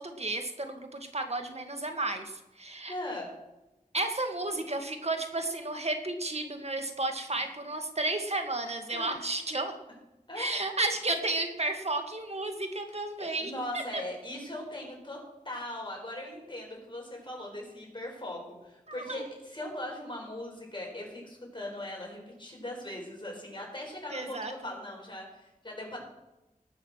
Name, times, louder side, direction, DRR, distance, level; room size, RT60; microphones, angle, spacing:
voice 1, 0.0-2.9 3.9-9.7 10.4-14.0 19.1-19.2 24.1-24.5, right 2 dB, 45° right, 5 dB, 2.0 m, -32 dB
voice 2, 2.9-3.3 7.3-7.4 8.9-9.1 10.3-10.6 13.2-15.2 15.4-26.0, left 1 dB, 35° left, -1 dB, 6.0 m, -40 dB
19.0 x 6.6 x 6.5 m, 0.98 s
wide cardioid pair, 60°, 14 cm